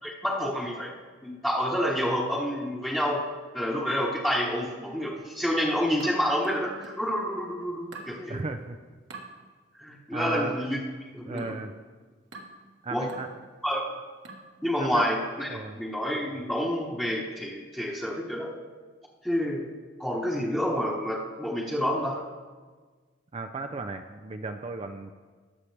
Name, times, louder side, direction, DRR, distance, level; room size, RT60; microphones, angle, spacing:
voice 1, 0.0-0.9 1.2-3.2 3.5-8.4 9.8-10.8 11.1-11.4 12.9-13.1 13.6-13.8 14.6-18.5 19.2-19.6 20.0-22.2, equal, 5° left, -6 dB, 1.2 m, -28 dB
sound 1, 6.0-7.1 7.9-8.2 9.1-9.3 10.2-10.5 11.4-11.7 12.3-12.6 13.1-13.4 14.2-14.5, right 3 dB, 65° right, 1.5 m, -45 dB
voice 2, 8.3-8.8 10.1-10.5 11.3-11.7 12.8-13.3 14.8-15.1 15.5-15.8 23.3-25.1, right 3 dB, 30° right, 6 dB, 0.5 m, -35 dB
21.0 x 7.3 x 3.4 m, 1.4 s
head